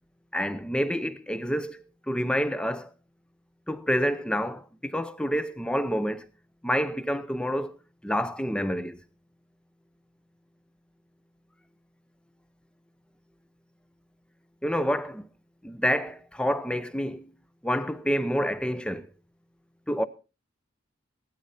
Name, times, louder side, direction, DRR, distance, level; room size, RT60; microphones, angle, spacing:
voice 1, 0.3-2.9 3.7-6.3 6.6-7.7 8.0-9.0 14.6-15.3 15.6-17.3 17.6-19.1 19.9-20.0, equal, 5° left, 0.7 m, -28 dB
16.0 x 12.0 x 4.2 m
head